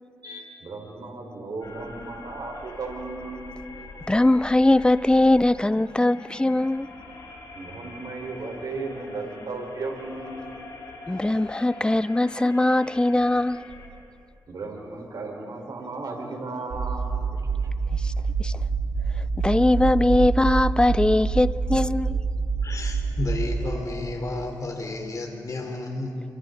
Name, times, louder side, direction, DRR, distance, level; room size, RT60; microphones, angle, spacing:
voice 1, 0.2-3.4 7.5-10.5 14.5-17.1, right 3 dB, 70° right, 4.4 m, -35 dB
sound 1, 1.6-13.9, left 3 dB, 80° left, 4.1 m, -44 dB
voice 2, 4.1-6.9 11.1-13.6 17.9-18.1 18.4-18.5 19.4-22.2, left 1 dB, 15° left, 0.5 m, -21 dB
sound 2, 16.7-23.7, right 4 dB, 85° right, 1.6 m, -26 dB
voice 3, 22.6-26.2, left 2 dB, 55° left, 3.7 m, -32 dB
28.5 x 24.5 x 4.0 m
cardioid pair, 60°, 7 cm